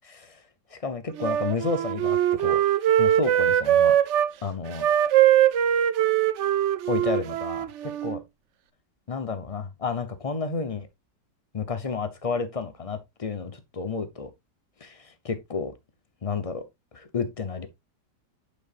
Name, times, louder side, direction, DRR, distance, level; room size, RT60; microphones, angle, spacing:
voice 1, 0.0-0.4 0.7-2.6 3.0-4.0 4.4-4.9 6.9-8.2 9.1-10.9 11.5-14.3 14.8-15.7 16.2-16.6 16.9-17.7, left 4 dB, 45° left, 0.4 m, -31 dB
Wind instrument woodwind instrument, 1.2-4.3 4.7-8.2, right 11 dB, 75° right, 0.6 m, -22 dB
10.0 x 5.5 x 2.4 m
omnidirectional pair, 1.9 m